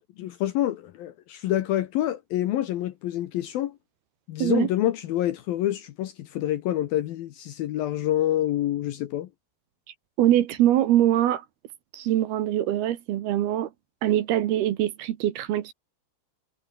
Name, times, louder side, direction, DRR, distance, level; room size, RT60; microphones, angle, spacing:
voice 1, 0.2-3.8 4.3-9.3, left 13 dB, 70° left, 2.4 m, -27 dB
voice 2, 10.2-11.4 11.9-13.7 14.0-15.7, right 12 dB, 70° right, 3.0 m, -23 dB
omnidirectional pair, 5.2 m